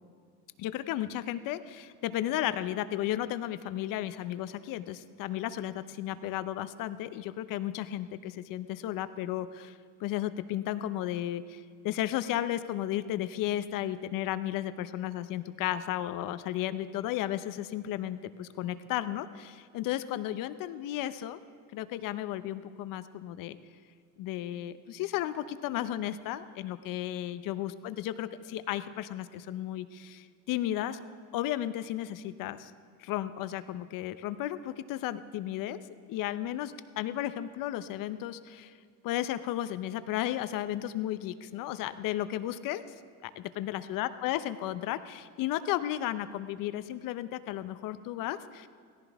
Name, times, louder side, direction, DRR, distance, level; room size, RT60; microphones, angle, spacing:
voice 1, 0.6-9.7 10.0-21.4 21.7-23.6 24.2-31.0 31.3-32.7 33.0-35.8 36.1-38.7 39.0-42.8 43.2-43.3 43.6-48.7, left 13 dB, 50° left, 12 dB, 0.8 m, -34 dB
17.0 x 15.0 x 3.5 m, 2.1 s
supercardioid pair, 100°, 42 cm